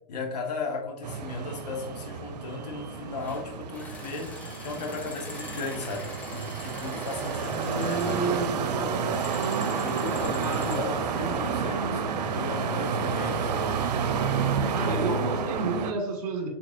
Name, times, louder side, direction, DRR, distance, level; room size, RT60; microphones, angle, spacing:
voice 1, 0.1-9.2 9.8-13.6, left 3 dB, 80° left, 1 dB, 1.4 m, -36 dB
sound 1, 1.0-15.9, right 6 dB, 90° right, 0.6 m, -30 dB
sound 2, 3.2-3.4 3.7-8.2 9.1-10.9, left 2 dB, 5° left, 0.5 m, -43 dB
sound 3, 6.0-6.5 6.8-7.1 7.5-7.7 8.1-8.2 9.0-9.4 10.5-10.6 11.2-11.7, right 3 dB, 45° right, 1.1 m, -52 dB
voice 2, 10.4-10.8 14.7-16.5, right 3 dB, 60° right, 1 dB, 1.7 m, -31 dB
6.3 x 3.2 x 2.6 m, 0.85 s
hypercardioid pair, 155°, 21 cm